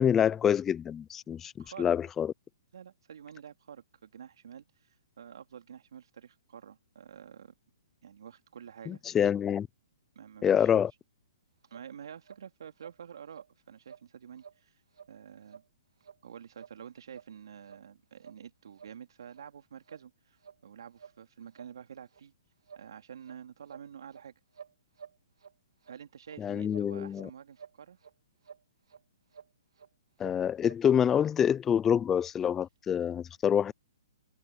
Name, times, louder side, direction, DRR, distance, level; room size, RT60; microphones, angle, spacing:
voice 1, 0.0-1.5 1.8-2.3 8.9-9.7 10.4-10.9 26.4-27.3 30.2-33.7, left 8 dB, 10° left, 0.3 m, -26 dB
voice 2, 1.6-1.9 2.7-7.5 8.0-9.0 10.1-10.7 11.7-14.8 15.1-15.6 16.2-22.3 22.8-24.3 25.9-28.0, right 8 dB, 65° right, 2.8 m, -48 dB
sound 1, 11.7-11.9 12.2-12.4 12.8-13.0 13.3-13.5 13.8-14.0 14.4-14.6 14.9-15.1 15.5-15.7 16.0-16.2 16.6-16.8 17.1-17.3 17.6-17.8 18.2-18.4 18.8-18.9 19.3-19.4 19.8-20.0 20.4-20.5 21.0-21.2 21.5-21.7 22.1-22.2 22.7-22.9 23.2-23.4 23.7-24.2 24.5-25.5 25.8-26.0 26.3-26.4 26.7-27.3 27.6-28.1 28.4-28.6 28.9-29.0 29.3-29.5 29.8-29.9 30.2-30.8 31.1-31.2, right 7 dB, 90° right, 2.5 m, -51 dB
hypercardioid pair, 165°, 3 cm